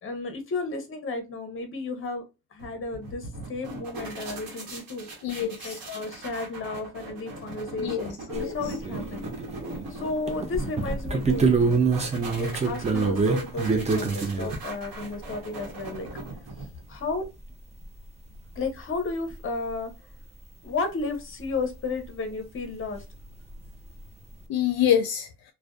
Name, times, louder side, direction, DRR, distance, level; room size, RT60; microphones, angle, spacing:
voice 1, 0.0-2.2 2.5-5.1 5.6-9.3 9.6-11.5 12.3-16.1 16.9-17.3 18.6-19.9 20.6-23.0, left 3 dB, 30° left, 0.7 m, -33 dB
sound 1, 2.6-16.9, right 2 dB, 60° right, 1.0 m, -39 dB
voice 2, 5.2-5.8 7.8-8.6 24.5-25.3, left 9 dB, 65° left, 0.5 m, -26 dB
sound 2, 8.3-8.4 8.8-9.9 10.3-14.6 17.2-17.3 17.5-17.6 18.6-18.7 19.3-19.4 23.0-23.1 23.3-23.7, right 4 dB, 20° right, 0.4 m, -25 dB
2.6 x 2.2 x 2.2 m
cardioid pair, 125°, 39 cm